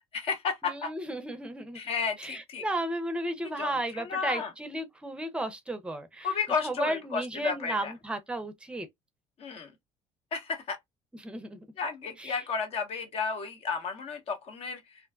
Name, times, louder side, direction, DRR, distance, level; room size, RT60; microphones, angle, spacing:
voice 1, 0.1-0.9 1.7-2.6 3.4-4.5 6.2-7.9 9.4-9.7 10.3-10.8 11.8-14.8, left 5 dB, 50° left, 0.9 m, -32 dB
voice 2, 0.6-1.8 2.2-6.3 6.6-8.9 11.2-11.6 12.2-12.4, right 1 dB, 10° right, 0.6 m, -34 dB
2.5 x 2.1 x 2.4 m
supercardioid pair, 100°, 13 cm